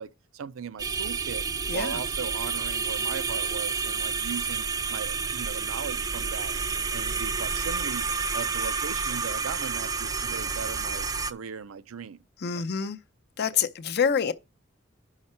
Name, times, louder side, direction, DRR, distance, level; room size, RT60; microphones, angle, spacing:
voice 1, 0.0-1.5 1.7-6.5 6.9-12.2 12.5-12.6, right 7 dB, 75° right, 0.4 m, -38 dB
sound 1, 0.8-11.3, right 5 dB, 20° right, 0.3 m, -30 dB
voice 2, 1.7-2.0 12.4-13.0 13.4-14.3, left 7 dB, 55° left, 0.6 m, -26 dB
7.3 x 5.7 x 4.3 m
head